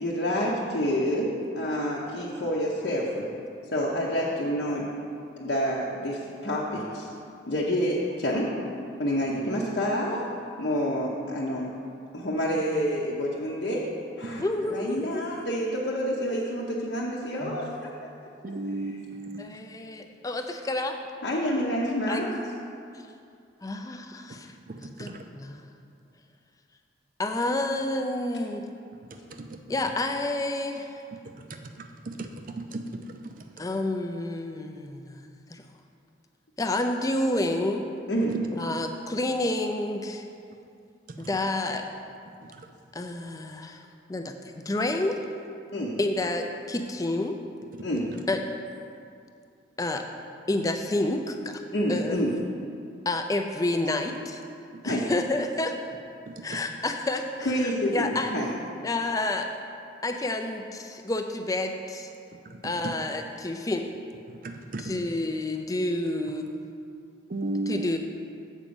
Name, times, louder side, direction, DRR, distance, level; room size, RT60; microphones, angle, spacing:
voice 1, 0.0-3.3 3.7-4.9 5.4-7.1 7.5-8.6 9.0-10.3 10.6-11.7 12.1-13.8 14.2-17.9 18.8-19.0 21.2-22.4 38.1-38.4 45.7-45.9 47.8-48.1 51.7-52.3 54.8-55.1 57.4-58.5, equal, 55° left, -5 dB, 0.8 m, -28 dB
voice 2, 14.3-15.2 19.4-21.0 22.1-22.2 23.6-24.5 24.8-25.7 27.2-28.6 29.7-31.0 33.6-35.6 36.6-37.8 38.5-40.2 41.2-41.8 42.9-43.8 44.1-45.2 46.0-47.4 48.3-48.4 49.8-50.0 50.5-51.6 51.9-52.2 53.1-54.4 54.8-55.8 56.4-58.3 58.8-59.5 60.0-62.1 62.6-63.9 64.8-66.5 67.7-68.0, left 2 dB, 20° left, 5 dB, 0.4 m, -29 dB
voice 3, 18.4-19.4 32.1-32.3 32.7-32.8 64.7-64.9 67.3-67.9, right 2 dB, 45° right, 6 dB, 0.5 m, -32 dB
7.3 x 5.1 x 6.9 m, 2.4 s
head